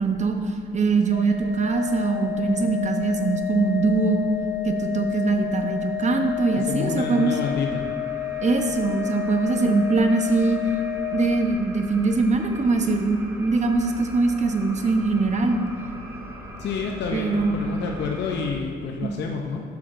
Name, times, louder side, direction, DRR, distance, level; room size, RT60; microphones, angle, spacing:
voice 1, 0.0-4.2 4.6-7.3 8.4-10.6 11.1-15.6 17.1-17.7 19.0-19.1, right 3 dB, 35° right, 5 dB, 0.7 m, -22 dB
Organ, 1.1-11.8, left 14 dB, 85° left, 1.6 m, -31 dB
voice 2, 6.7-7.9 16.6-19.6, left 5 dB, 60° left, 1 dB, 0.6 m, -28 dB
sound 1, 7.1-18.5, equal, 15° right, 1.0 m, -41 dB
8.1 x 6.3 x 2.5 m, 2.3 s
cardioid pair, 90°, 20 cm